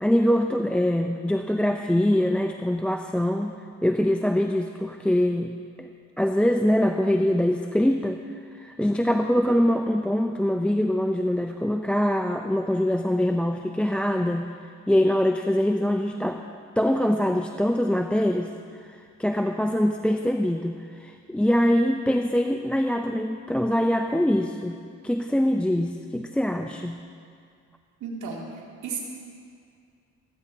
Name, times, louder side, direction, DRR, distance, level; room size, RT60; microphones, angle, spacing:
voice 1, 0.0-5.9 6.2-8.2 8.5-14.5 14.9-16.4 16.8-18.5 18.8-27.0, left 1 dB, 5° left, 5 dB, 0.5 m, -24 dB
voice 2, 28.0-28.5 28.8-29.0, right 5 dB, 75° right, -2 dB, 2.5 m, -32 dB
26.5 x 9.5 x 2.8 m, 2.3 s
cardioid pair, 90°, 30 cm